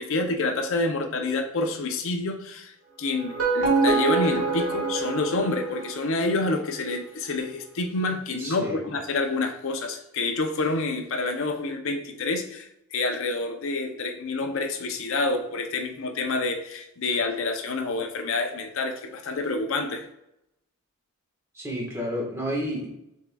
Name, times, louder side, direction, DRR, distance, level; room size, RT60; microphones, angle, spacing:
voice 1, 0.0-20.1, left 3 dB, 60° left, 5 dB, 0.5 m, -28 dB
sound 1, 3.2-6.3, right 4 dB, 80° right, 1.6 m, -25 dB
voice 2, 8.4-8.8 21.5-22.9, equal, 10° right, -3 dB, 1.3 m, -30 dB
6.6 x 3.6 x 2.2 m, 0.81 s
head